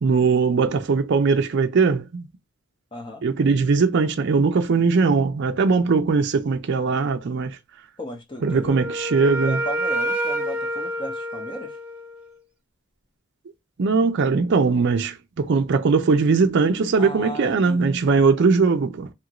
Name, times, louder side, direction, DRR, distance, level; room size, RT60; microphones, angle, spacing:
voice 1, 0.0-2.3 3.2-7.6 8.4-9.6 13.8-19.1, right 4 dB, 55° right, 0.4 m, -20 dB
voice 2, 2.9-3.2 8.0-8.8 9.4-11.8 17.0-18.0, equal, 20° left, 0.7 m, -35 dB
Wind instrument woodwind instrument, 8.4-12.3, right 1 dB, 5° right, 0.9 m, -28 dB
2.8 x 2.5 x 2.9 m
head